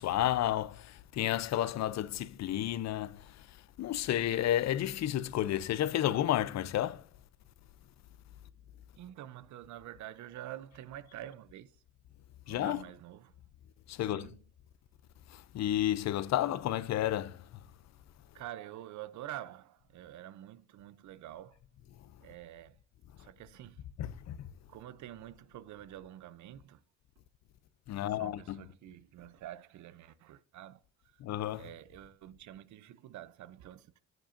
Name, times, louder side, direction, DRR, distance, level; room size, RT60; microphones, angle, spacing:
voice 1, 0.0-7.1 12.5-12.8 13.9-14.3 15.3-17.5 24.0-24.5 27.9-28.6 31.2-31.7, left 12 dB, 60° left, 0.6 m, -32 dB
voice 2, 9.0-11.7 12.5-13.4 14.1-14.4 18.3-21.6 22.2-22.8 23.2-23.8 24.7-26.8 28.0-30.8 31.6-34.0, right 12 dB, 70° right, 0.6 m, -47 dB
9.1 x 7.6 x 2.5 m
cardioid pair, 90°, 30 cm